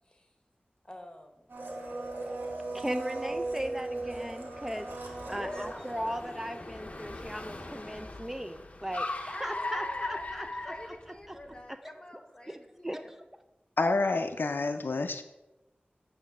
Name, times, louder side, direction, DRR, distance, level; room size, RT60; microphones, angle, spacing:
voice 1, 0.8-2.6 5.2-5.9 9.3-13.1, left 1 dB, 25° left, 4 dB, 1.1 m, -47 dB
Domestic sounds home sounds, 1.5-6.8 7.0-7.1, right 2 dB, 85° right, 1.1 m, -38 dB
Car, 1.7-11.5, left 2 dB, 40° left, 0.7 m, -40 dB
voice 2, 2.7-4.9 5.3-10.7 11.3-11.4 11.8-11.9 12.5-13.0, equal, 10° right, 8 dB, 0.4 m, -37 dB
voice 3, 13.8-15.2, left 3 dB, 80° left, 8 dB, 0.4 m, -28 dB
8.7 x 3.1 x 5.9 m, 1.0 s
wide cardioid pair, 60°, 3 cm